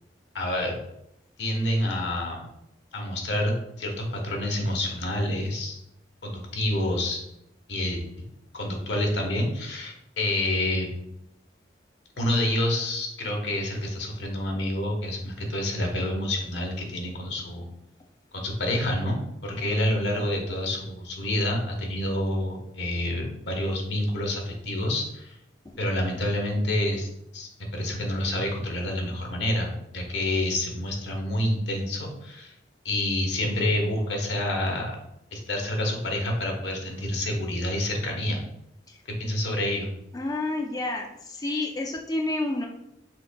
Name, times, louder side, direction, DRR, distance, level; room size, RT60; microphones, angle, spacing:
voice 1, 0.3-0.7 1.4-2.4 2.9-5.8 6.2-7.2 7.7-8.0 8.5-10.9 12.2-17.7 18.3-25.4 25.8-32.5 32.8-34.9 35.3-38.4 39.2-39.9, left 1 dB, 75° left, 1 dB, 1.2 m, -28 dB
voice 2, 40.1-42.7, left 2 dB, 20° left, 1 dB, 0.4 m, -30 dB
6.0 x 3.8 x 2.2 m, 0.82 s
head